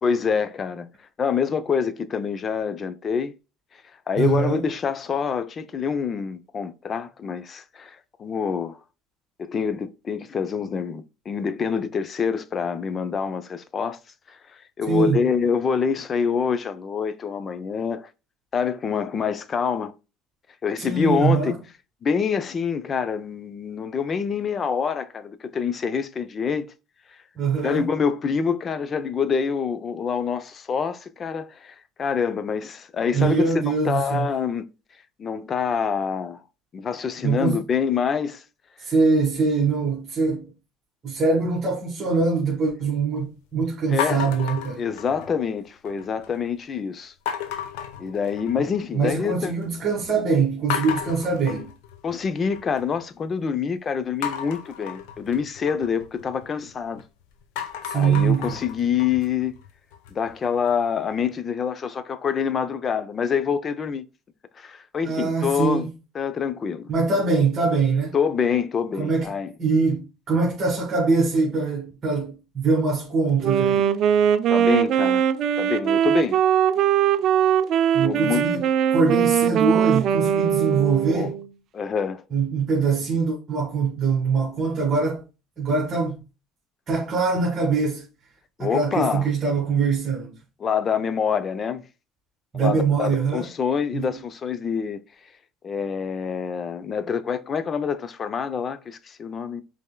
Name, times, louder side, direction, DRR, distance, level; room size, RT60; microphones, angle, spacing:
voice 1, 0.0-0.9 1.2-3.3 4.1-8.8 9.4-14.0 14.3-14.4 14.8-18.1 18.5-19.9 20.6-21.6 22.0-26.7 27.6-34.7 35.2-36.4 36.7-38.4 43.9-44.2 44.8-47.1 48.0-49.5 52.0-57.0 57.9-59.5 60.1-64.0 64.6-65.9 66.1-66.9 68.1-69.5 74.5-75.2 75.6-76.4 78.0-78.4 81.1-81.3 81.7-82.2 88.6-89.3 90.6-91.8 92.5-95.0 95.6-99.6, left 6 dB, 35° left, 0.5 m, -26 dB
voice 2, 4.2-4.6 14.9-15.3 20.8-21.6 27.4-27.9 33.1-34.3 37.2-37.6 38.8-40.5 41.0-44.8 48.6-51.7 57.8-58.6 65.0-65.9 66.9-68.2 69.0-69.3 69.6-73.9 77.9-78.6 78.9-81.4 82.3-85.2 85.6-86.2 86.9-88.0 88.6-90.3 92.5-93.5 93.9-94.2, right 4 dB, 30° right, 1.7 m, -23 dB
sound 1, 44.0-45.5 45.8-46.4 47.3-48.8 49.1-49.7 50.0-50.1 50.7-52.8 54.2-57.0 57.4-60.3, left 9 dB, 85° left, 0.8 m, -33 dB
Wind instrument woodwind instrument, 73.4-81.5, right 9 dB, 50° right, 0.4 m, -21 dB
5.3 x 3.4 x 2.2 m
supercardioid pair, 110°, 0 cm